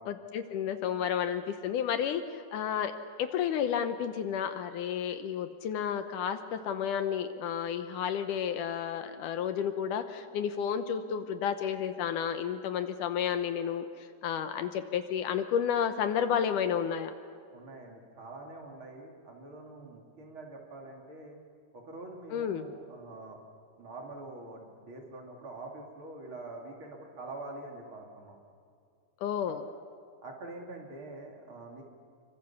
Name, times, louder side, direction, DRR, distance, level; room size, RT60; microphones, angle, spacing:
voice 1, 0.1-17.1 22.3-22.7 29.2-29.6, left 8 dB, 75° left, 9 dB, 2.3 m, -31 dB
voice 2, 17.5-21.4 21.7-23.4 23.8-28.4 29.4-29.5 30.2-31.8, right 2 dB, 40° right, 0 dB, 3.4 m, -45 dB
26.5 x 24.0 x 7.2 m, 2.3 s
omnidirectional pair, 4.0 m